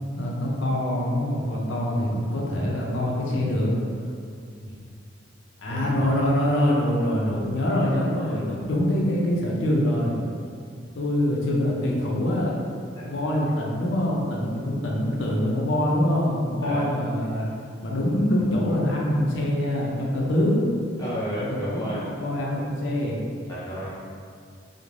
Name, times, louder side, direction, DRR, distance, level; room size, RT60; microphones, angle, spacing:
voice 1, 0.2-3.7 5.6-10.1 11.0-12.5 13.0-17.5 17.8-20.6 21.4-23.2, left 1 dB, 75° left, -3 dB, 0.5 m, -24 dB
voice 2, 5.6-6.1 12.9-13.0 16.6-16.8 21.0-22.0 23.5-23.9, equal, 20° left, -10 dB, 0.7 m, -32 dB
2.5 x 2.0 x 3.1 m, 2.2 s
head